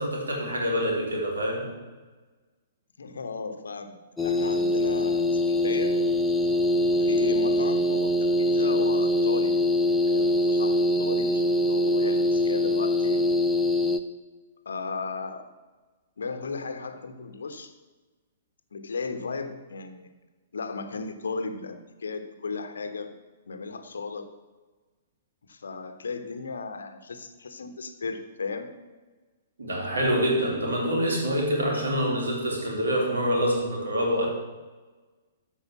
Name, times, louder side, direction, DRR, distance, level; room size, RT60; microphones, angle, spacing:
voice 1, 0.0-1.7 29.6-34.3, equal, 65° right, -1 dB, 3.4 m, -26 dB
voice 2, 3.0-6.0 7.0-9.6 9.9-13.3 14.6-15.5 16.2-17.7 18.7-20.1 20.5-23.1 23.5-24.3 25.4-28.7, left 4 dB, 65° left, 8 dB, 1.1 m, -35 dB
sound 1, 4.2-14.0, left 1 dB, 5° left, 0.7 m, -23 dB
13.5 x 5.0 x 7.3 m, 1.3 s
figure-of-eight pair, 115°, 0 cm